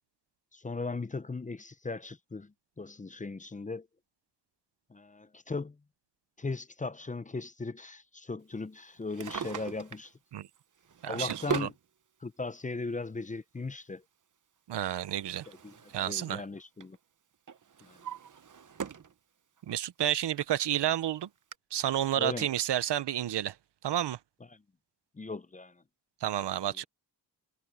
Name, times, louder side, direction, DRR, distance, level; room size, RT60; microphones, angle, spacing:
voice 1, 0.5-3.9 4.9-5.8 6.4-10.1 11.0-11.7 12.2-14.0 15.6-15.7 16.0-17.0 17.8-18.0 22.2-22.5 24.5-24.6 25.2-25.8, left 3 dB, 20° left, 0.6 m, -38 dB
Drawer open or close, 9.0-10.1 10.8-11.8 12.9-13.0 14.7-16.3 16.6-17.0 17.5-19.1 19.6-19.7 20.4-20.5 20.7-20.8 21.5-21.6, right 7 dB, 50° right, 1.0 m, -39 dB
voice 2, 11.0-11.7 14.7-15.5 15.9-16.4 19.7-21.3 21.7-23.5 23.8-24.2 26.2-26.8, right 11 dB, 90° right, 0.8 m, -30 dB
wide cardioid pair, 90°, 40 cm